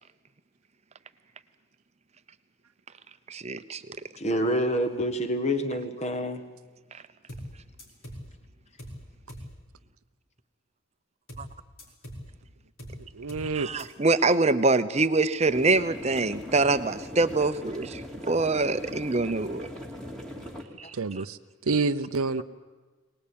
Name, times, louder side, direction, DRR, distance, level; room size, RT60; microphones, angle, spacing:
voice 1, 3.3-3.8 11.4-11.5 13.5-18.0 18.3-19.7 20.8-20.9 21.2-21.3, right 3 dB, 30° right, 12 dB, 0.8 m, -24 dB
voice 2, 4.2-6.4, equal, 30° left, 8 dB, 1.6 m, -27 dB
sound 1, 7.3-7.5 7.8-8.3 8.8-9.0 9.3-9.5 11.3-11.5 11.8-12.3 12.8-13.0 13.3-13.5 13.8-13.9, equal, 65° left, 5.0 m, -41 dB
voice 3, 13.1-13.7 21.0-21.4 21.7-22.4, right 4 dB, 80° right, 12 dB, 0.7 m, -27 dB
sound 2, 15.4-20.6, left 1 dB, 5° left, 2.4 m, -40 dB
23.0 x 19.5 x 8.8 m, 1.3 s
head